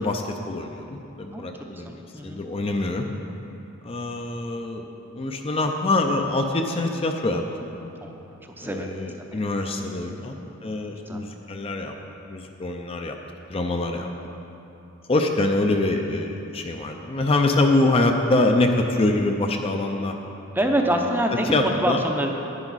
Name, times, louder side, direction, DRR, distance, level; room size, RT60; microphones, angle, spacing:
voice 1, 0.0-3.1 3.8-4.9 5.1-7.4 8.6-11.9 12.3-13.2 13.5-14.1 15.1-20.2 21.5-22.0, left 2 dB, 30° left, 3 dB, 0.5 m, -24 dB
voice 2, 1.3-2.5 8.0-9.4 9.8-10.3 11.1-11.2 20.5-22.3, right 1 dB, 10° right, 2 dB, 0.6 m, -27 dB
10.5 x 9.7 x 4.1 m, 2.9 s
head